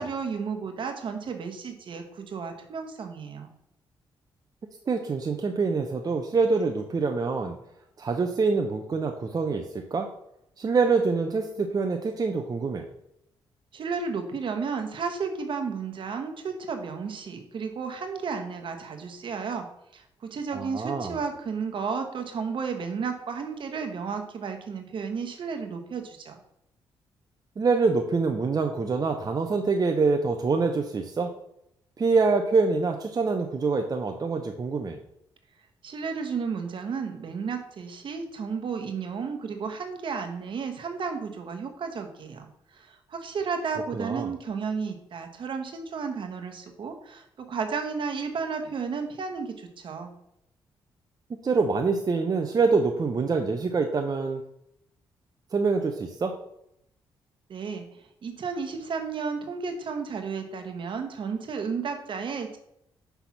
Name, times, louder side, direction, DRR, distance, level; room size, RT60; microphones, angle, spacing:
voice 1, 0.0-3.5 13.7-19.7 19.9-26.4 35.8-50.1 57.5-62.6, right 5 dB, 60° right, 5 dB, 1.1 m, -33 dB
voice 2, 4.9-7.6 8.0-9.6 9.9-10.1 10.6-12.9 20.5-21.2 27.6-31.3 32.0-35.0 43.9-44.3 51.4-54.4 55.5-56.3, right 4 dB, 40° right, 4 dB, 0.7 m, -25 dB
5.8 x 3.4 x 5.8 m, 0.78 s
supercardioid pair, 60°, 10 cm